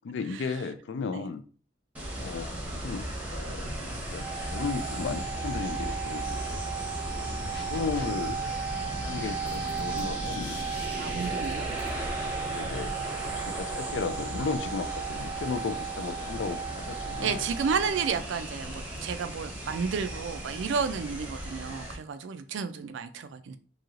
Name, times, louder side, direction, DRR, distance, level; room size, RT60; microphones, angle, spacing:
voice 1, 0.0-1.4 2.2-3.7 4.1-6.6 7.0-8.4 9.0-10.6 12.5-17.4 18.1-18.2, left 5 dB, 75° left, 0.4 m, -35 dB
sound 1, 1.9-21.9, right 1 dB, 10° right, 0.7 m, -36 dB
sound 2, 4.2-18.1, right 7 dB, 30° left, 0.7 m, -36 dB
sound 3, 7.2-8.1 8.4-12.8, left 1 dB, 55° left, 0.9 m, -45 dB
voice 2, 11.0-11.7 17.2-23.6, right 6 dB, 80° right, 0.4 m, -32 dB
3.0 x 2.7 x 2.5 m
head